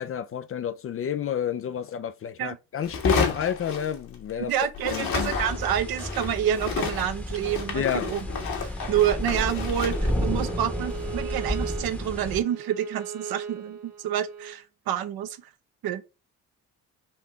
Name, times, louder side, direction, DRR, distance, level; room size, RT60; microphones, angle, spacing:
voice 1, 0.0-4.5 4.9-5.3 7.7-8.1, left 9 dB, 35° left, 0.4 m, -30 dB
sound 1, 2.8-4.4 4.7-11.9, left 4 dB, 55° left, 1.5 m, -32 dB
voice 2, 4.5-8.2 8.6-15.4 15.8-16.1, right 10 dB, 60° right, 0.7 m, -28 dB
sound 2, 5.1-12.4, left 1 dB, 5° left, 0.9 m, -32 dB
Bowed string instrument, 9.6-14.6, right 7 dB, 85° right, 1.1 m, -39 dB
4.2 x 2.7 x 4.6 m
hypercardioid pair, 55°, 40 cm